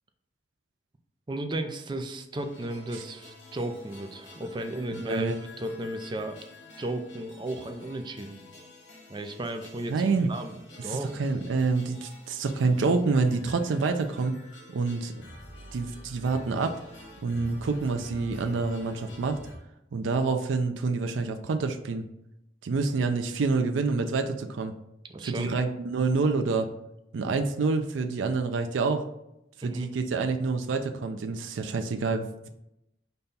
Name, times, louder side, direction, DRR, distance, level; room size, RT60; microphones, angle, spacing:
voice 1, 1.3-5.3 5.6-6.4 6.8-8.4 9.1-10.0 10.3-11.2 25.1-25.6 29.6-29.9, right 1 dB, 25° right, 6 dB, 0.4 m, -34 dB
sound 1, 2.4-19.6, left 1 dB, 80° left, 1.4 m, -48 dB
voice 2, 4.9-5.4 9.9-10.3 10.8-14.4 14.7-15.1 15.7-16.8 17.2-19.4 19.9-22.1 22.6-24.8 25.2-26.7 27.1-29.0 29.6-32.5, right 4 dB, 90° right, 6 dB, 0.4 m, -27 dB
5.3 x 2.3 x 4.0 m, 0.83 s
head